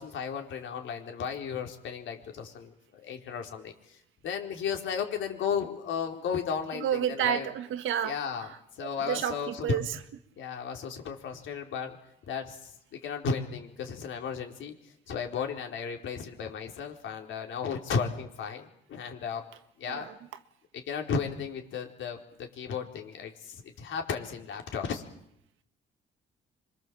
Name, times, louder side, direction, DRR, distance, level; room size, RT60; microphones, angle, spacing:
voice 1, 0.0-4.0 4.2-7.5 8.0-8.5 8.7-9.8 10.4-12.0 12.2-19.4 19.8-20.1 20.7-25.0, left 6 dB, 75° left, 4.3 m, -34 dB
voice 2, 6.7-9.9 19.9-20.1, right 10 dB, 85° right, 1.7 m, -31 dB
26.5 x 24.0 x 7.7 m
cardioid pair, 90°, 20 cm